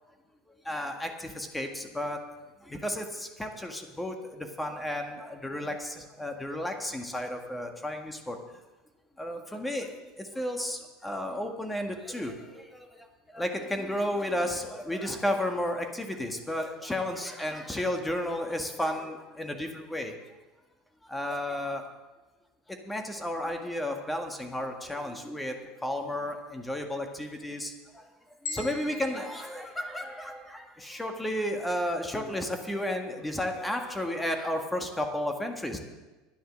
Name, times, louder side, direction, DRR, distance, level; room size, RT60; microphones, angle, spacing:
voice 1, 0.6-2.2 2.6-8.4 9.2-20.1 21.0-21.9 22.7-28.1 28.4-35.8, left 1 dB, 10° left, 4 dB, 1.8 m, -33 dB
sound 1, 28.5-30.6, left 3 dB, 85° left, 3.0 m, -42 dB
10.5 x 10.0 x 6.4 m, 1.2 s
hypercardioid pair, 85°, 0 cm